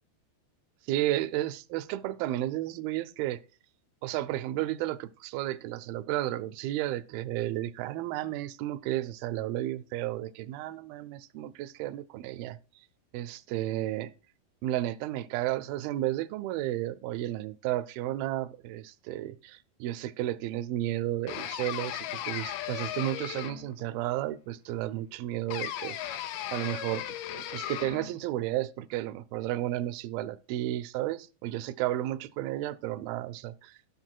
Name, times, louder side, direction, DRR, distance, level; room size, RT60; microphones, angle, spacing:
voice 1, 0.9-3.4 4.0-12.6 13.1-14.1 14.6-26.2 26.5-27.0 27.3-33.8, right 14 dB, 85° right, 2.1 m, -33 dB
sound 1, 21.3-23.8 25.5-28.1, left 12 dB, 80° left, 2.4 m, -36 dB
12.0 x 6.6 x 4.4 m
omnidirectional pair, 5.0 m